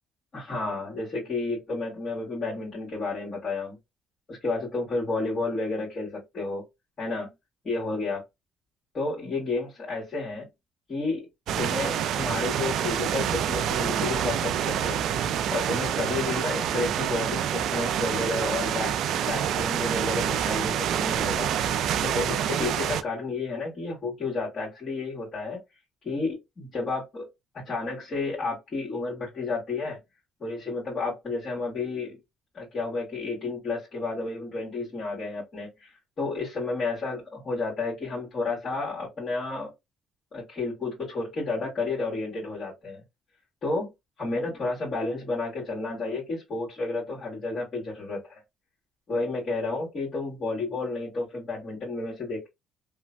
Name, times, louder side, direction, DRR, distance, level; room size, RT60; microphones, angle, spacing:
voice 1, 0.3-3.8 4.3-6.6 7.0-7.3 7.6-8.2 8.9-10.5 10.9-11.3 11.6-15.1 15.5-18.9 19.3-21.7 22.0-25.6 26.0-27.3 27.6-30.0 30.4-32.2 32.5-39.7 40.3-43.0 43.6-43.9 44.2-48.4 49.1-52.5, left 3 dB, 45° left, 1.6 m, -31 dB
sound 1, 11.5-23.0, right 9 dB, 70° right, 0.3 m, -27 dB
3.0 x 2.1 x 2.5 m
cardioid pair, 85°, 0 cm